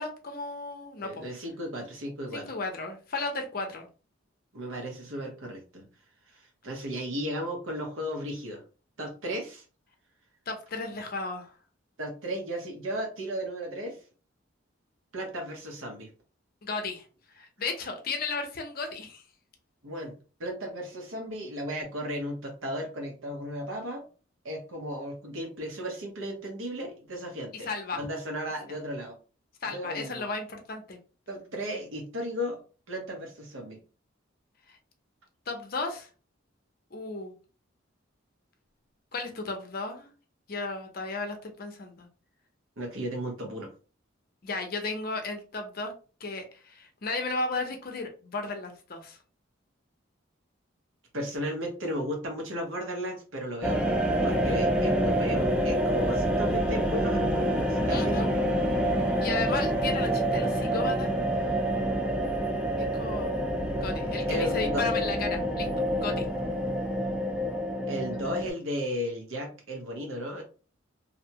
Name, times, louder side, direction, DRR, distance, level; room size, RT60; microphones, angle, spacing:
voice 1, 0.0-1.2 2.3-3.9 10.5-11.5 16.6-17.0 17.3-19.2 27.6-28.0 29.6-31.0 34.7-34.8 35.5-36.1 36.9-37.3 39.1-40.1 40.5-42.1 44.4-45.9 46.2-49.2 57.9-58.3 59.2-61.1 62.8-63.3 63.8-66.3, left 3 dB, 45° left, 4 dB, 0.6 m, -34 dB
voice 2, 1.0-2.5 4.5-5.9 6.3-8.6 9.0-9.6 12.0-14.0 15.1-16.1 19.8-20.1 20.4-24.1 24.4-27.7 28.0-29.1 29.6-30.3 31.3-32.6 32.9-33.8 42.8-43.7 51.1-53.8 54.2-58.5 64.3-64.9 67.9-70.4, equal, 85° right, 1 dB, 1.0 m, -35 dB
sound 1, 53.6-68.5, right 1 dB, 5° right, 0.3 m, -27 dB
2.6 x 2.2 x 2.7 m, 0.36 s
head